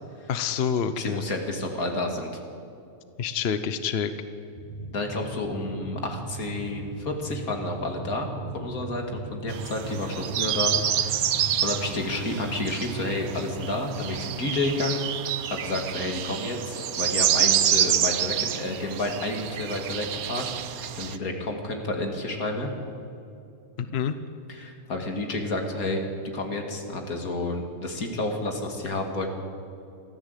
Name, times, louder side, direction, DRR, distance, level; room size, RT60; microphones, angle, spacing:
voice 1, 0.3-1.3 3.2-4.1 23.8-24.1, left 7 dB, 50° left, 11 dB, 1.0 m, -27 dB
voice 2, 0.9-2.3 4.9-8.3 8.5-11.3 11.6-22.7 24.5-26.0 26.3-29.3, left 2 dB, 85° left, 3 dB, 2.8 m, -30 dB
sound 1, 4.5-14.3, right 2 dB, 30° left, 2.5 m, -38 dB
sound 2, 9.5-21.2, right 10 dB, 90° right, 1.3 m, -28 dB
23.5 x 14.5 x 8.3 m, 2.7 s
omnidirectional pair, 1.5 m